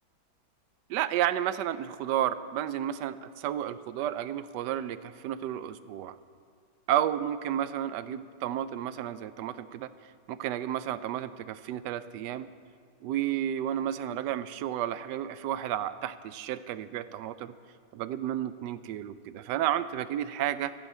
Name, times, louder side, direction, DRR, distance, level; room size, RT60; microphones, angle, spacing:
voice 1, 0.9-6.1 6.9-9.9 10.3-12.5 13.0-17.5 17.9-20.7, right 11 dB, 75° right, 14 dB, 1.1 m, -32 dB
26.0 x 10.0 x 4.4 m, 2.4 s
omnidirectional pair, 2.1 m